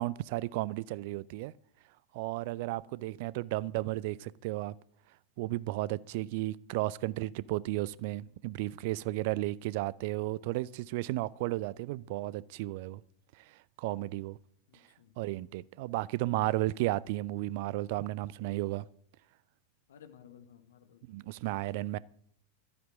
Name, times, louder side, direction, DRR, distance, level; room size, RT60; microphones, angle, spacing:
voice 1, 0.0-1.5 2.1-4.7 5.4-13.0 13.5-14.4 15.2-18.9 21.1-22.0, right 17 dB, 50° right, 0.5 m, -34 dB
voice 2, 6.2-6.5 14.7-15.1 19.9-21.4, left 8 dB, 60° left, 1.6 m, -57 dB
12.5 x 8.8 x 9.0 m
figure-of-eight pair, 90°, 0 cm